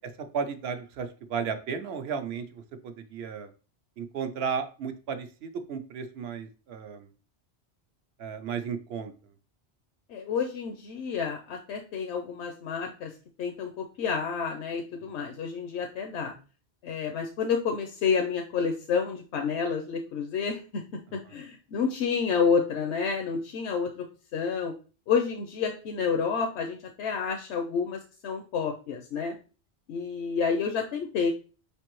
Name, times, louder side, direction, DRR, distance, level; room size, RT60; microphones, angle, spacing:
voice 1, 0.3-3.5 4.0-7.1 8.2-9.3 21.3-21.4, right 6 dB, 70° right, 8 dB, 0.8 m, -34 dB
voice 2, 10.1-13.1 13.4-16.3 16.8-20.8 21.1-24.0 24.3-24.7 25.1-29.3 29.9-31.3, left 6 dB, 80° left, 3 dB, 0.9 m, -29 dB
5.1 x 3.3 x 3.0 m, 0.36 s
omnidirectional pair, 1.1 m